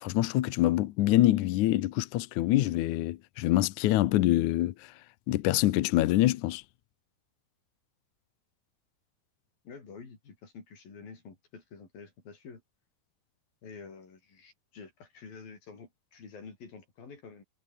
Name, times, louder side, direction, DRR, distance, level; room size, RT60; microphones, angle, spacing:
voice 1, 0.0-4.9 5.3-6.6, left 15 dB, 80° left, 1.7 m, -25 dB
voice 2, 9.6-12.6 13.6-17.4, left 5 dB, 60° left, 7.4 m, -48 dB
omnidirectional pair, 4.7 m